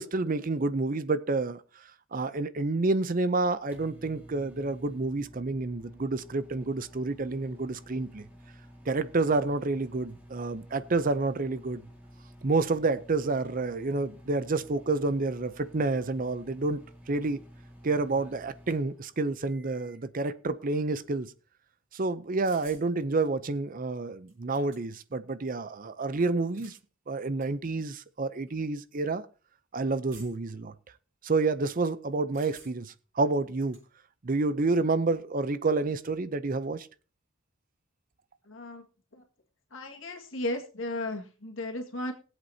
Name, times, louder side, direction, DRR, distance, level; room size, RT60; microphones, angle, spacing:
voice 1, 0.0-8.3 8.9-11.9 12.4-16.8 17.1-17.4 17.8-21.3 21.9-26.8 27.1-29.2 29.7-30.7 31.2-33.8 34.2-36.9, right 3 dB, 40° right, 0.6 m, -29 dB
sound 1, 3.5-20.1, equal, 10° right, 2.0 m, -52 dB
sound 2, 22.4-22.9 23.9-24.0 24.3-25.1 26.3-26.8 27.4-27.5 28.3-28.5 30.1-30.5 32.3-32.9 33.3-33.8, right 5 dB, 65° right, 5.0 m, -53 dB
voice 2, 38.5-38.9 39.1-39.2 39.7-42.1, left 1 dB, 70° left, 1.9 m, -35 dB
20.5 x 8.1 x 2.8 m
head